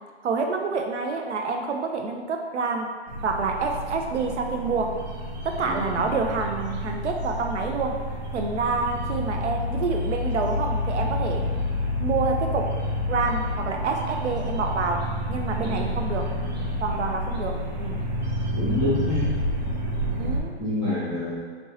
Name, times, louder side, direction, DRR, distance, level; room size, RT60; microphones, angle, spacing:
voice 1, 0.2-2.9 3.2-4.9 5.4-8.0 8.3-11.5 12.0-12.7 13.1-16.3 16.8-18.0 20.2-20.5, right 4 dB, 90° right, 3 dB, 0.7 m, -27 dB
sound 1, 3.1-20.4, left 1 dB, 40° right, 0.6 m, -29 dB
voice 2, 5.6-6.1 15.6-15.9 18.5-19.4 20.6-21.3, left 1 dB, 5° left, -15 dB, 0.4 m, -27 dB
4.3 x 2.9 x 3.0 m, 1.5 s
hypercardioid pair, 165°, 34 cm